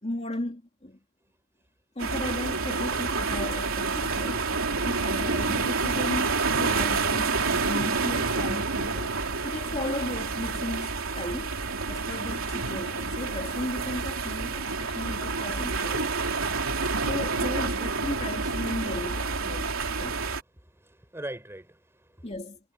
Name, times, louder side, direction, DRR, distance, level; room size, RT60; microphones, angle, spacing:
voice 1, 0.0-1.0 1.9-11.5 11.9-16.4 17.1-19.7 20.0-20.2 22.2-22.6, left 1 dB, 30° left, 2.9 m, -35 dB
sound 1, 2.0-20.4, right 4 dB, 65° right, 3.6 m, -28 dB
voice 2, 19.8-20.2 20.6-22.3, right 1 dB, 10° right, 4.5 m, -42 dB
head